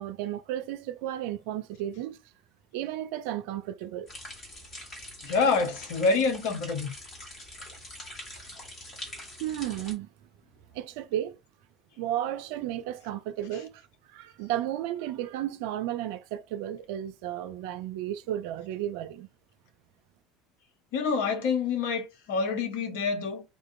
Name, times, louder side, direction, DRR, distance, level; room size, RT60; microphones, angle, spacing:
voice 1, 0.0-2.2 2.7-4.1 9.4-10.1 10.7-11.4 12.0-13.8 14.1-19.3, right 12 dB, 60° right, 0.4 m, -33 dB
sound 1, 4.1-9.9, left 1 dB, 35° left, 1.7 m, -44 dB
voice 2, 5.2-6.9 20.9-23.4, left 4 dB, 65° left, 0.8 m, -27 dB
3.6 x 2.5 x 2.5 m
figure-of-eight pair, 65°, 0 cm